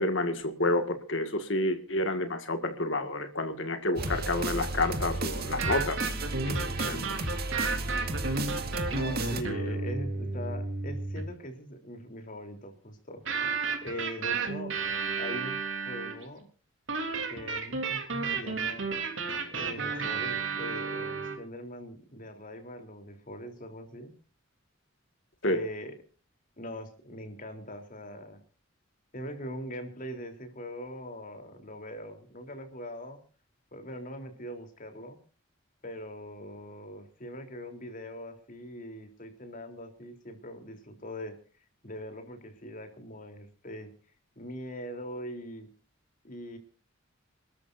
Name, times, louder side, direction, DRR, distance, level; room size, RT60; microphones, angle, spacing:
voice 1, 0.0-6.0 6.5-7.0 25.4-25.6, left 2 dB, 70° left, 7 dB, 2.0 m, -29 dB
sound 1, 4.0-9.4, right 2 dB, 50° right, 2.1 m, -33 dB
sound 2, 5.5-11.3 13.3-16.2 16.9-21.4, right 4 dB, 70° right, 3.5 m, -32 dB
voice 2, 6.6-7.2 8.9-13.2 13.8-14.8 15.2-15.6 15.9-16.5 17.3-18.8 19.5-24.1 25.5-25.9 26.6-28.4 29.1-33.2 33.7-35.2 35.8-41.4 41.8-43.9 44.4-45.7 46.2-46.6, equal, 45° left, 5 dB, 3.6 m, -41 dB
28.5 x 13.5 x 2.7 m, 0.37 s
head